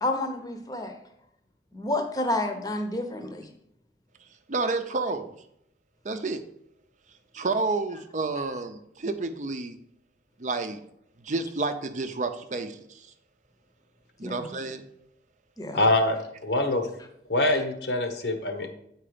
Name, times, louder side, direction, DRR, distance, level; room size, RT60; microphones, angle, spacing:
voice 1, 0.0-0.9 1.7-3.5 14.2-14.5 15.6-15.8, left 1 dB, 20° left, 6 dB, 0.8 m, -30 dB
voice 2, 4.5-5.3 6.0-6.4 7.3-9.8 10.4-10.8 11.2-13.0 14.2-14.8, right 3 dB, 45° right, 8 dB, 0.6 m, -30 dB
voice 3, 15.7-16.8 17.3-18.7, left 2 dB, 75° left, 6 dB, 1.2 m, -24 dB
8.6 x 4.7 x 5.1 m, 0.74 s
head